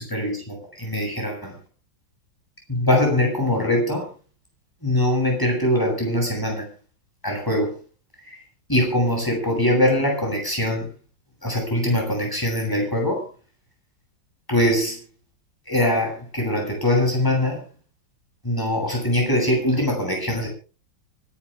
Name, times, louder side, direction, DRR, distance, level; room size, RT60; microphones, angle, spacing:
voice 1, 0.0-1.5 2.7-4.1 4.8-6.7 7.2-7.7 8.2-8.4 8.7-10.9 11.4-13.3 14.5-15.0 15.7-17.6 18.4-20.5, left 1 dB, 10° left, 0 dB, 7.8 m, -22 dB
24.5 x 12.0 x 3.6 m, 0.35 s
omnidirectional pair, 2.0 m